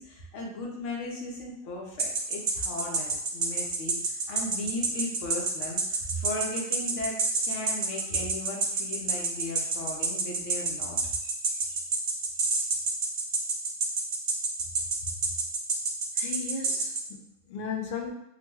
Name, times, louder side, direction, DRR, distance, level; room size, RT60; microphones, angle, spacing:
voice 1, 0.0-7.2 7.4-11.0, left 2 dB, 80° left, -1 dB, 1.1 m, -36 dB
sound 1, 2.0-17.0, right 4 dB, 75° right, 1.0 m, -27 dB
voice 2, 11.2-11.8 16.2-18.1, left 5 dB, 60° left, 2 dB, 0.6 m, -37 dB
3.0 x 2.2 x 2.9 m, 0.82 s
omnidirectional pair, 1.2 m